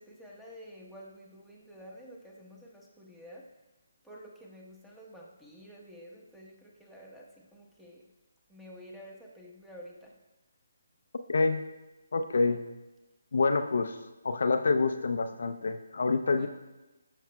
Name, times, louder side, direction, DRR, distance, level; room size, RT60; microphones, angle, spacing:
voice 1, 0.0-3.5 4.0-8.1 8.5-10.2 16.3-16.5, equal, 5° right, -3 dB, 1.0 m, -50 dB
voice 2, 11.3-11.6 12.1-12.6 13.3-14.0 14.2-16.5, left 3 dB, 60° left, 7 dB, 0.5 m, -27 dB
13.5 x 6.5 x 2.2 m, 1.1 s
figure-of-eight pair, 150°, 0 cm